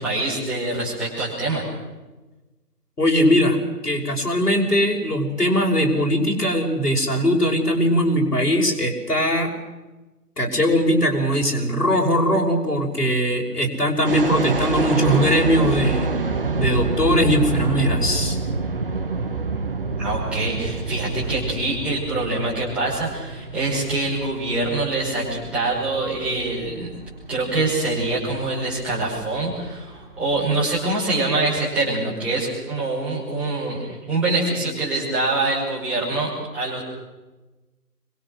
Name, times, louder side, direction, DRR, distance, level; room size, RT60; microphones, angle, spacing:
voice 1, 0.0-1.6 20.0-26.9 27.3-36.8, right 2 dB, ahead, -9 dB, 5.7 m, -25 dB
voice 2, 3.0-3.6 3.8-9.5 10.4-16.1 16.5-18.4, equal, 70° left, 0 dB, 5.9 m, -20 dB
sound 1, 14.0-30.8, right 3 dB, 35° right, 1.7 m, -27 dB
26.5 x 25.0 x 6.6 m, 1.1 s
figure-of-eight pair, 155°, 48 cm